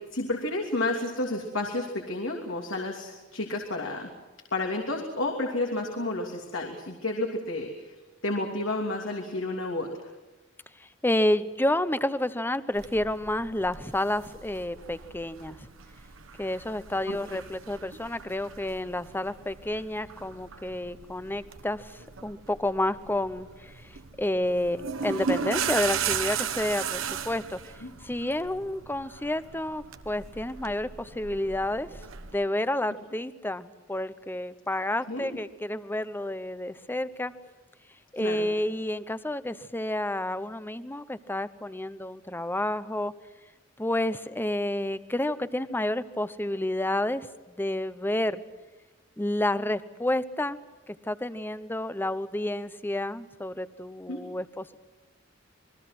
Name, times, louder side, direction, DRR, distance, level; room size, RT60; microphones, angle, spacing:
voice 1, 0.1-4.1 4.5-7.9 8.2-9.9 17.1-17.2 27.8-27.9 34.8-35.4 38.2-38.5 54.1-54.2, left 2 dB, 80° left, 1 dB, 3.0 m, -31 dB
voice 2, 11.0-15.6 16.4-21.8 22.2-23.7 24.2-27.6 28.0-32.0 32.3-37.3 38.1-43.1 43.8-47.3 47.6-48.4 49.2-50.6 50.9-54.8, left 1 dB, 10° left, 13 dB, 0.8 m, -30 dB
sound 1, 12.8-32.4, right 7 dB, 85° right, 1.2 m, -37 dB
28.0 x 21.5 x 6.1 m, 1.1 s
head